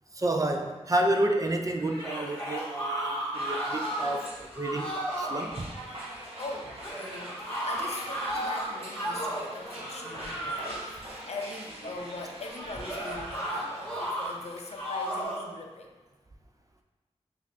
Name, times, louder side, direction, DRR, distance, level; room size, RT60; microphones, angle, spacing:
voice 1, 0.1-5.7, right 1 dB, 30° right, 3 dB, 0.4 m, -30 dB
sound 1, 1.8-4.2 4.5-5.4 6.8-9.5 10.0-10.9 12.8-14.3 14.7-15.5, right 1 dB, 10° left, 1.4 m, -34 dB
sound 2, 3.3-15.2, right 1 dB, 55° right, 1.0 m, -43 dB
voice 2, 6.4-15.9, left 2 dB, 65° left, 2 dB, 0.5 m, -41 dB
5.0 x 2.4 x 2.5 m, 1.2 s
wide cardioid pair, 70°, 12 cm